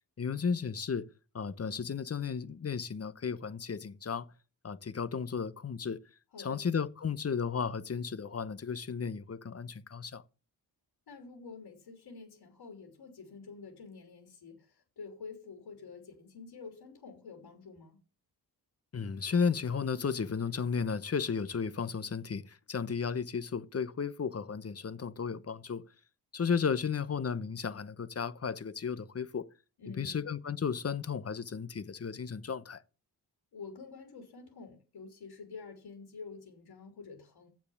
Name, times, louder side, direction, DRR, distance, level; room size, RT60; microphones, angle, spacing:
voice 1, 0.2-1.1 1.3-4.3 4.6-6.0 6.4-10.2 18.9-25.8 26.3-29.5 30.0-32.8, left 6 dB, 35° left, 0.9 m, -34 dB
voice 2, 6.3-6.6 11.1-18.0 29.8-30.3 33.5-37.5, left 4 dB, 75° left, 3.5 m, -48 dB
7.6 x 7.1 x 7.1 m
cardioid pair, 80°, 40 cm